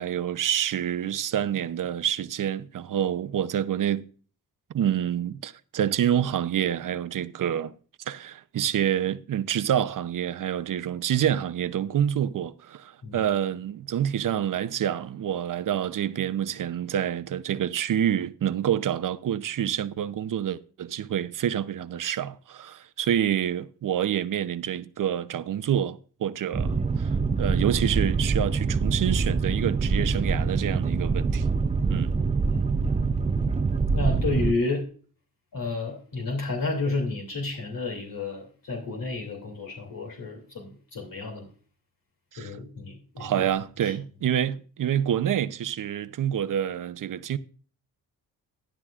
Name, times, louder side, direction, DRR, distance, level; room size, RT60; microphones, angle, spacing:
voice 1, 0.0-4.0 4.7-7.7 8.1-27.1 27.4-31.5 31.9-32.2 33.0-33.1 34.4-34.5 42.3-42.6 43.2-47.4, right 10 dB, 55° right, 0.8 m, -27 dB
Boat Water vehicle, 26.5-34.5, right 4 dB, 20° right, 0.5 m, -25 dB
voice 2, 33.9-34.8 35.5-41.5 42.4-43.3 43.8-43.9, left 3 dB, 60° left, 2.8 m, -31 dB
13.5 x 11.0 x 2.5 m
cardioid pair, 75°, 38 cm